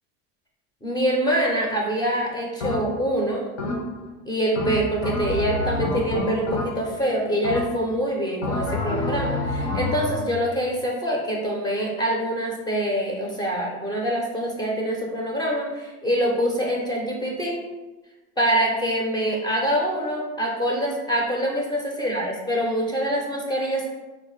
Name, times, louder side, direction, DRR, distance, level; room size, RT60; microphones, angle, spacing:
voice 1, 0.8-3.5 4.3-17.6 18.4-23.8, equal, 10° left, -2 dB, 0.4 m, -25 dB
sound 1, 2.6-3.1 3.6-4.1 4.6-7.0 7.4-8.0 8.4-10.4, left 2 dB, 85° left, 0.9 m, -27 dB
3.9 x 2.0 x 3.0 m, 1.1 s
supercardioid pair, 125°, 37 cm